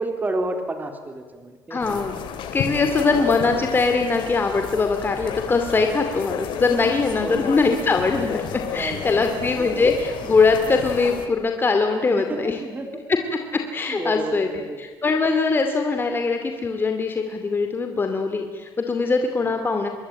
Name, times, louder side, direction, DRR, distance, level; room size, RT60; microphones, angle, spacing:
voice 1, 0.0-1.8 7.2-7.5 8.7-9.9 12.1-13.0 13.9-14.8 19.4-19.6, right 2 dB, 20° right, 6 dB, 3.6 m, -31 dB
voice 2, 1.7-2.1 2.5-12.6 13.5-14.5 14.8-19.9, left 4 dB, 25° left, 5 dB, 2.4 m, -22 dB
sound 1, 1.8-11.3, left 8 dB, 70° left, 2.8 m, -32 dB
26.0 x 21.5 x 8.9 m, 1.4 s
cardioid pair, 120°, 9 cm